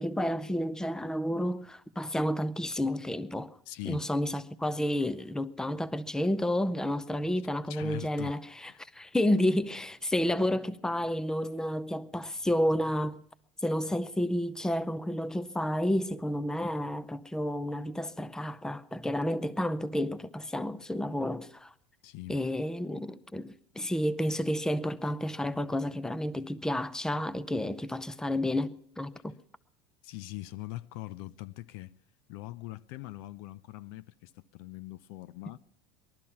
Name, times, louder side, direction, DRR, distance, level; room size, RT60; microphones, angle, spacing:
voice 1, 0.0-3.6 3.9-13.2 13.6-21.7 22.3-29.4, left 1 dB, 5° left, 0.6 m, -31 dB
voice 2, 3.7-4.1 7.7-8.4 8.7-8.8 22.0-22.4 30.0-31.9 32.3-35.6, left 17 dB, 70° left, 0.6 m, -42 dB
19.0 x 12.5 x 5.6 m
supercardioid pair, 115°, 14 cm